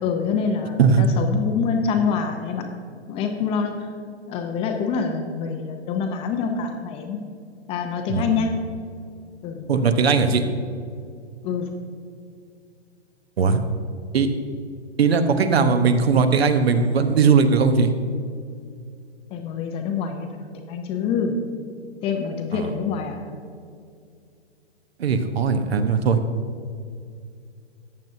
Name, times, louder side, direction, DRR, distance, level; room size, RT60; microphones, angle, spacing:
voice 1, 0.0-2.7 3.1-3.9 4.3-7.2 7.7-8.5 9.4-9.7 11.4-11.7 19.3-21.4 22.0-23.3, left 6 dB, 15° left, 4 dB, 0.6 m, -26 dB
voice 2, 9.7-10.4 13.4-13.6 14.1-14.3 15.0-17.9 22.5-22.6 25.0-26.2, right 5 dB, 65° right, 8 dB, 1.0 m, -19 dB
14.0 x 9.3 x 2.7 m, 2.3 s
hypercardioid pair, 125°, 34 cm